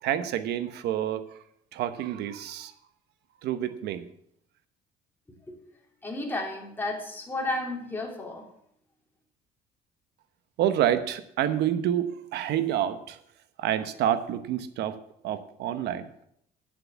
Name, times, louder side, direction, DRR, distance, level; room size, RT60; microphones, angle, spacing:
voice 1, 0.0-1.3 1.7-2.7 3.4-4.1 10.6-13.2 13.6-15.0 15.2-16.1, right 11 dB, 80° right, 11 dB, 1.0 m, -28 dB
voice 2, 6.0-8.4, left 2 dB, 10° left, -1 dB, 3.2 m, -32 dB
9.5 x 7.6 x 7.2 m, 0.72 s
cardioid pair, 110°, 17 cm